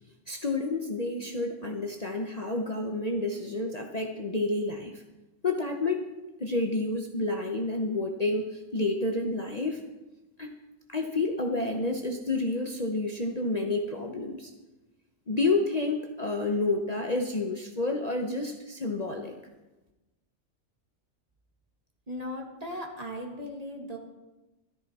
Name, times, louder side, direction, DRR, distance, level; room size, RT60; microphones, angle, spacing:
voice 1, 0.3-5.0 5.4-6.1 6.4-9.8 10.4-10.5 10.9-14.5 15.3-19.3, left 2 dB, 35° left, 2 dB, 0.9 m, -29 dB
voice 2, 22.1-24.0, left 1 dB, 30° right, 2 dB, 1.7 m, -37 dB
13.5 x 13.5 x 4.2 m, 1.1 s
omnidirectional pair, 1.4 m